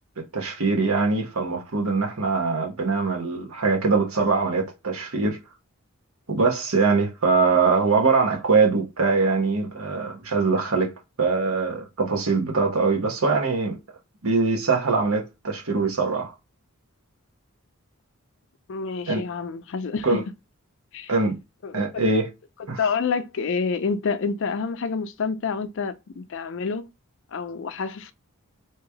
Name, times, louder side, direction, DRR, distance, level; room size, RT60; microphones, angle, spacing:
voice 1, 0.3-5.4 6.3-10.9 11.2-13.8 14.2-16.3 19.1-19.2 20.0-20.2 21.1-21.4 21.7-22.3 22.7-22.8, right 4 dB, 75° right, 1.2 m, -22 dB
voice 2, 18.7-20.2 20.9-21.1 21.6-21.8 22.8-26.8 27.3-28.1, left 5 dB, 60° left, 0.4 m, -28 dB
3.2 x 3.0 x 3.4 m
head